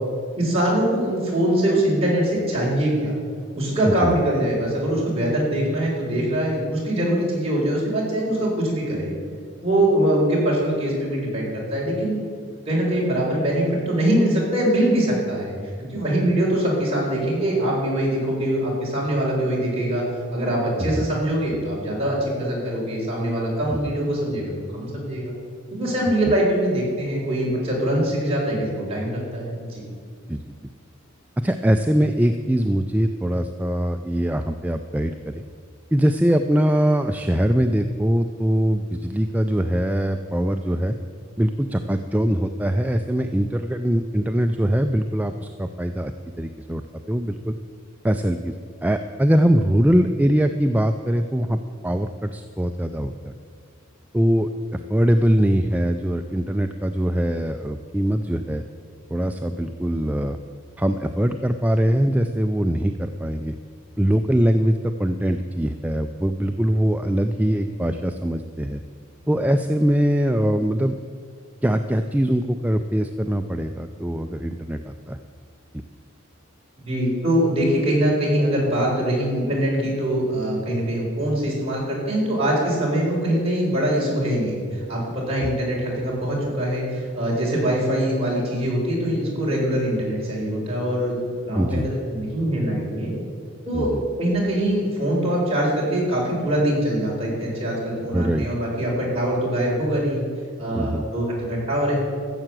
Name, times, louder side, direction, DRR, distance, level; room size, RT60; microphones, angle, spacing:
voice 1, 0.4-3.2 3.5-9.1 9.6-12.2 12.7-20.0 20.3-25.3 25.7-29.8 76.8-93.1 93.7-93.9 94.2-100.2 100.6-101.9, right 1 dB, 30° right, -5 dB, 4.2 m, -23 dB
voice 2, 31.4-35.4 35.9-41.0 41.4-46.1 46.4-46.8 47.1-47.5 48.0-48.5 48.8-53.3 54.1-58.6 59.1-60.4 60.8-63.5 64.0-68.8 69.3-71.0 71.6-75.2 85.4-85.5 91.5-91.9 93.7-94.0 98.1-98.5 100.7-101.0, equal, 5° right, 7 dB, 0.4 m, -22 dB
14.0 x 7.7 x 7.5 m, 2.1 s
head